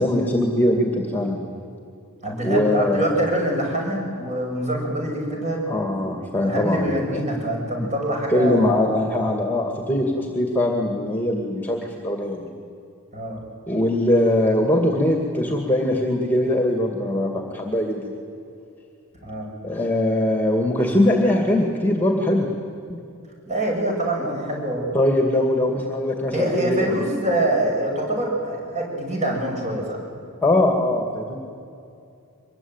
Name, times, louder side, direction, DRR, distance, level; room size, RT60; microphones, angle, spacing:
voice 1, 0.0-1.4 2.4-3.0 5.7-7.0 8.3-12.5 13.7-18.1 19.6-22.5 22.9-23.0 24.9-27.0 30.4-31.4, left 1 dB, 10° left, 2 dB, 2.2 m, -21 dB
voice 2, 2.2-5.6 6.4-8.7 13.1-13.4 19.2-19.5 23.5-24.9 26.3-30.0, right 1 dB, 35° right, 0 dB, 6.6 m, -25 dB
24.0 x 21.5 x 9.0 m, 2.5 s
head